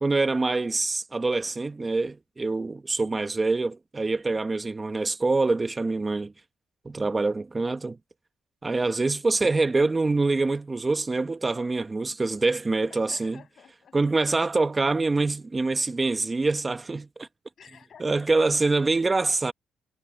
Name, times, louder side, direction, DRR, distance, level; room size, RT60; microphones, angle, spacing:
voice 1, 0.0-6.3 6.8-8.0 8.6-13.4 13.9-17.3 18.0-19.5, right 3 dB, 25° right, 1.2 m, -25 dB
voice 2, 12.9-14.3 17.6-18.7, left 8 dB, 55° left, 7.5 m, -52 dB
cardioid pair, 90°, 0 cm